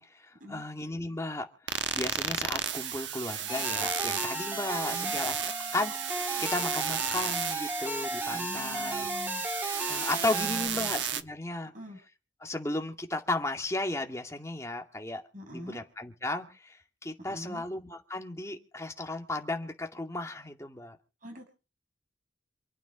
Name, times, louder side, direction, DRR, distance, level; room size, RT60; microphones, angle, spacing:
voice 1, 0.0-9.1 9.9-11.7 12.4-15.2 15.5-21.0, left 2 dB, 15° left, 3 dB, 2.3 m, -35 dB
sound 1, 1.7-11.2, right 9 dB, 70° right, 1.2 m, -33 dB
sound 2, 3.5-10.7, equal, 10° right, 2.2 m, -35 dB
voice 2, 8.3-9.4 10.3-10.9 11.7-12.0 15.3-15.8 17.3-17.6 21.2-21.4, equal, 45° right, 3 dB, 6.6 m, -43 dB
27.5 x 9.3 x 5.0 m, 0.35 s
head